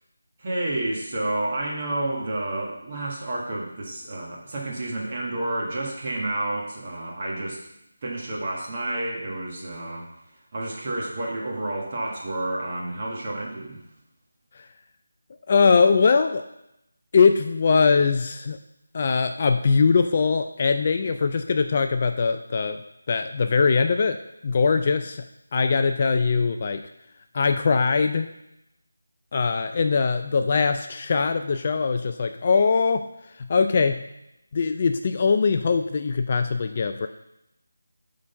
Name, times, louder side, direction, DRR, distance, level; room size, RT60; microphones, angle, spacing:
voice 1, 0.4-7.6 8.0-10.1 10.5-13.8, right 1 dB, 30° right, -3 dB, 1.6 m, -30 dB
voice 2, 15.5-16.4 17.1-18.6 18.9-22.8 23.1-24.2 24.4-25.2 25.5-26.8 27.3-28.3 29.3-33.0 33.4-34.0 34.5-37.1, left 5 dB, 30° left, 7 dB, 0.3 m, -21 dB
8.1 x 3.8 x 5.6 m, 0.85 s
figure-of-eight pair, 170°, 0 cm